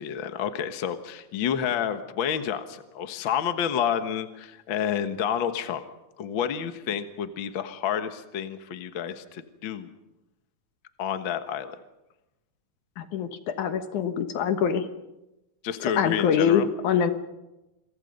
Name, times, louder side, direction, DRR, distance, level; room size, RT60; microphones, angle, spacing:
voice 1, 0.0-5.8 6.2-9.9 11.0-11.8 15.6-16.7, left 8 dB, 50° left, 9 dB, 1.5 m, -29 dB
voice 2, 13.0-14.9 16.0-17.1, left 7 dB, 70° left, 9 dB, 2.6 m, -24 dB
28.5 x 23.5 x 5.4 m, 0.96 s
omnidirectional pair, 3.9 m